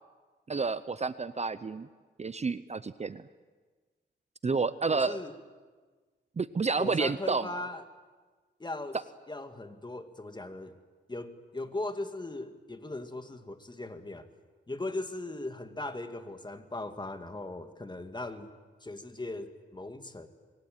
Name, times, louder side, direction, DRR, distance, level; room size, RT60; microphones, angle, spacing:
voice 1, 0.5-1.9 2.2-3.3 4.4-5.2 6.4-7.5, right 4 dB, 35° right, 14 dB, 0.8 m, -30 dB
voice 2, 4.9-5.3 6.8-7.8 8.6-9.0 9.3-10.8 11.1-14.3 14.7-18.5 18.8-20.3, left 2 dB, 25° left, 8 dB, 2.1 m, -39 dB
25.5 x 23.5 x 9.2 m, 1.4 s
cardioid pair, 80°, 19 cm